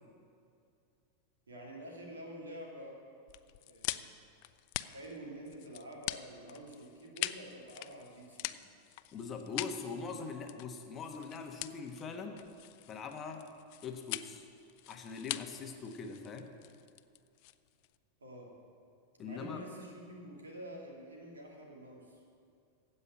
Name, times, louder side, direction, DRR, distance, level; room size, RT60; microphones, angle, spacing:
voice 1, 1.5-3.0 3.6-4.1 4.8-8.5 18.2-18.5 19.2-22.2, right 1 dB, 70° right, -1 dB, 2.6 m, -48 dB
sound 1, 3.3-18.0, left 17 dB, 45° left, 0.4 m, -43 dB
voice 2, 9.1-12.4 12.9-13.5 13.8-14.5 14.9-16.5 19.2-19.6, left 5 dB, 25° left, 4 dB, 1.2 m, -42 dB
15.5 x 5.6 x 9.0 m, 2.4 s
figure-of-eight pair, 90°, 0 cm